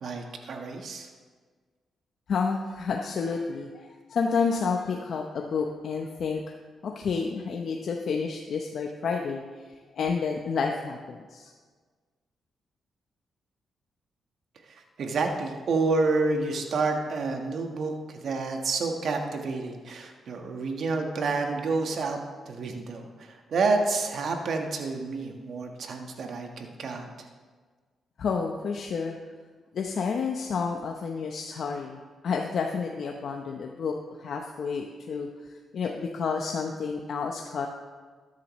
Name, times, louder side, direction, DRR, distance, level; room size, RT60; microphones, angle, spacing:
voice 1, 0.0-1.1 14.7-22.2 22.4-27.3, right 3 dB, 65° right, 3 dB, 1.4 m, -29 dB
voice 2, 2.3-6.4 6.8-9.4 9.9-11.5 28.2-29.2 29.7-32.0 32.2-33.9 34.2-35.3 35.7-37.7, left 5 dB, 65° left, 2 dB, 0.8 m, -30 dB
13.0 x 10.5 x 3.2 m, 1.5 s
cardioid pair, 65°, 0 cm